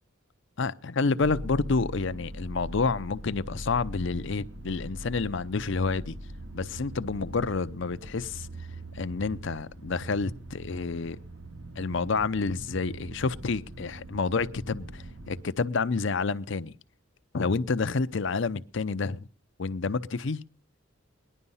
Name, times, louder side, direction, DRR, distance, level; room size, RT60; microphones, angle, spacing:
voice 1, 0.6-6.2 6.5-8.5 8.9-11.2 11.8-16.7 17.3-19.3 19.6-20.4, left 4 dB, 65° left, 0.7 m, -29 dB
sound 1, 1.2-15.4, right 1 dB, 70° right, 1.8 m, -42 dB
19.0 x 11.0 x 5.5 m
head